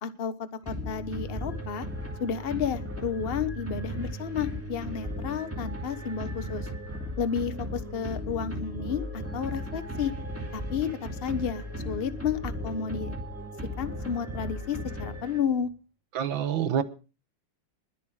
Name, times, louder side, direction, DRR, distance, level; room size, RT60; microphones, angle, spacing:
voice 1, 0.0-1.9 2.2-6.7 7.2-10.1 10.5-10.9 11.2-13.2 13.8-15.7, left 7 dB, 35° left, 1.2 m, -31 dB
sound 1, 0.6-15.7, equal, 5° right, 2.8 m, -36 dB
voice 2, 16.1-16.8, right 9 dB, 80° right, 2.0 m, -27 dB
21.5 x 8.6 x 4.9 m
omnidirectional pair, 2.1 m